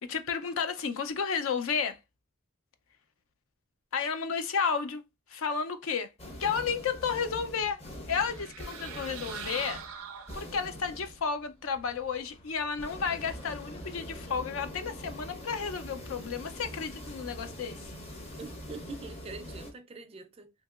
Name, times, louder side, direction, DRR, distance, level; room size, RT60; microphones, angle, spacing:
voice 1, 0.0-2.0 3.9-5.0 5.3-6.1 6.4-7.8 8.1-9.8 10.3-17.9, left 6 dB, 65° left, 0.4 m, -32 dB
sound 1, 6.2-19.7, equal, 30° left, 0.7 m, -44 dB
sound 2, 8.2-10.8, right 7 dB, 80° right, 0.5 m, -42 dB
voice 2, 18.4-20.5, right 3 dB, 25° right, 0.3 m, -44 dB
2.8 x 2.8 x 2.3 m
head